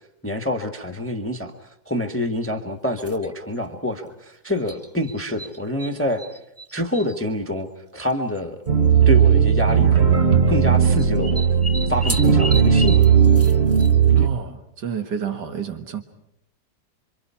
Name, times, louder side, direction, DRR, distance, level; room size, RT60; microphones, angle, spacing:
voice 1, 0.2-6.2 6.7-8.6 9.0-11.5 11.9-13.1, left 1 dB, 10° left, 4 dB, 1.5 m, -27 dB
sound 1, 3.0-3.3 4.7-5.9 6.2-7.1 8.1-8.2 8.4-8.5 9.4-9.7 11.0-14.2, equal, 10° right, 0.9 m, -33 dB
sound 2, 8.7-14.3, right 7 dB, 40° right, 1.5 m, -16 dB
voice 2, 14.2-16.0, right 6 dB, 90° right, 6 dB, 2.2 m, -29 dB
28.0 x 25.5 x 5.8 m, 0.79 s
omnidirectional pair, 1.8 m